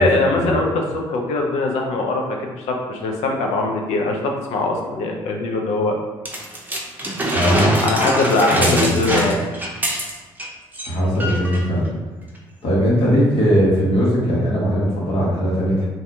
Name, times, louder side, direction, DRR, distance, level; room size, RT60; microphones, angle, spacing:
voice 1, 0.0-5.9 7.8-9.4, left 2 dB, 80° left, 1 dB, 0.6 m, -21 dB
sound 1, 6.3-10.5 10.7-10.9 11.2-11.6 12.4-12.5, right 1 dB, 15° right, 0.7 m, -23 dB
voice 2, 7.3-7.7 8.5-9.3 10.8-11.9 12.6-15.9, equal, 60° left, -6 dB, 1.2 m, -19 dB
2.7 x 2.3 x 3.5 m, 1.2 s
supercardioid pair, 60°, 11 cm